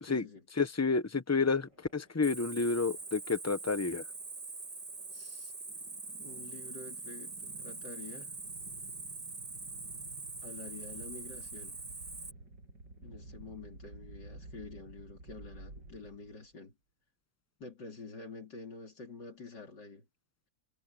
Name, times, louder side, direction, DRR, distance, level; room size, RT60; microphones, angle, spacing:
voice 1, 0.0-0.5 5.1-5.5 6.2-8.3 10.4-11.8 13.0-16.7 17.6-20.0, left 3 dB, 70° left, 4.2 m, -48 dB
voice 2, 0.6-4.0, left 4 dB, 15° left, 0.6 m, -30 dB
sound 1, 1.5-16.5, right 2 dB, 75° right, 8.0 m, -54 dB
Cricket, 2.2-12.3, right 3 dB, 30° right, 2.0 m, -43 dB
omnidirectional pair, 1.9 m